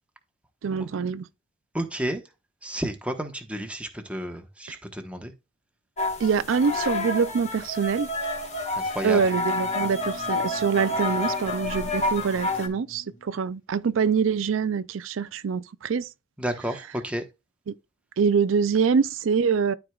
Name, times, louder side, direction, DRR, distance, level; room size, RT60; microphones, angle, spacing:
voice 1, 0.6-1.3 4.7-4.8 6.2-8.1 8.8-16.1 17.7-17.8 18.2-19.7, right 6 dB, 80° right, 0.4 m, -25 dB
voice 2, 1.7-2.2 2.6-5.3 8.9-9.2 16.4-17.2, right 1 dB, 5° right, 1.1 m, -31 dB
sound 1, 6.0-12.7, left 2 dB, 35° left, 1.6 m, -29 dB
Wind instrument woodwind instrument, 9.0-13.6, right 1 dB, 75° left, 2.6 m, -46 dB
12.5 x 4.5 x 2.4 m
head